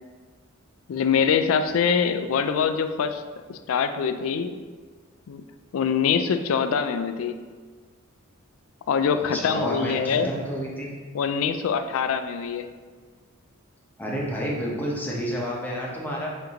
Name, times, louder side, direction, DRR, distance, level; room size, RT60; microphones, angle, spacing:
voice 1, 0.9-3.2 3.5-4.6 5.3-5.4 5.7-7.4 8.9-10.3 11.1-12.7, left 6 dB, 75° left, 9 dB, 0.3 m, -24 dB
voice 2, 9.1-10.9 14.0-16.3, equal, 10° left, -4 dB, 0.7 m, -30 dB
6.5 x 2.6 x 2.9 m, 1.5 s
head